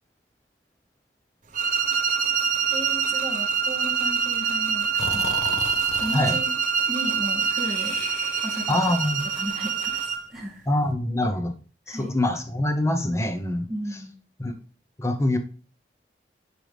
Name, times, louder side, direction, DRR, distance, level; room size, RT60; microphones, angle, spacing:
sound 1, 1.5-10.3, right 6 dB, 45° right, 1.0 m, -25 dB
voice 1, 2.7-5.3 6.0-6.5 6.9-8.0 8.4-8.9 9.3-10.7 11.9-12.1 13.7-14.2, equal, ahead, -6 dB, 2.3 m, -35 dB
Breathing, 5.0-6.3 7.6-8.9, left 4 dB, 55° left, 0.9 m, -35 dB
voice 2, 8.7-9.2 10.7-11.5 11.9-13.7 14.4-14.5 15.0-15.4, left 1 dB, 15° left, 7 dB, 0.9 m, -24 dB
10.5 x 4.8 x 3.5 m, 0.38 s
head